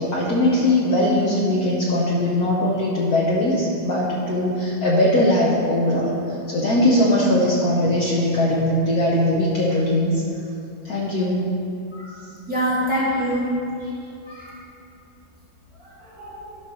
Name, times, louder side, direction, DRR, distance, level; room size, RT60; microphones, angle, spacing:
voice 1, 0.0-10.2 10.8-11.5, left 1 dB, 55° left, -5 dB, 1.2 m, -20 dB
voice 2, 12.5-13.5 14.2-14.5 15.8-16.6, equal, ahead, -7 dB, 1.4 m, -25 dB
12.0 x 4.0 x 6.1 m, 2.6 s
omnidirectional pair, 2.2 m